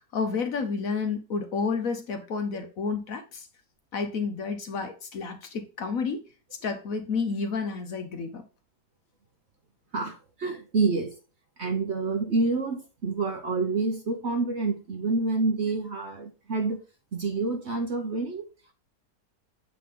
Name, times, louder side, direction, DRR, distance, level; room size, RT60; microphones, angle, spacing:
voice 1, 0.1-3.5 3.9-6.2 6.6-8.4, left 5 dB, 55° left, 1.2 m, -30 dB
voice 2, 9.9-11.2 11.6-16.8 17.1-18.4, right 3 dB, 50° right, 1.0 m, -28 dB
8.4 x 3.8 x 3.7 m
omnidirectional pair, 1.9 m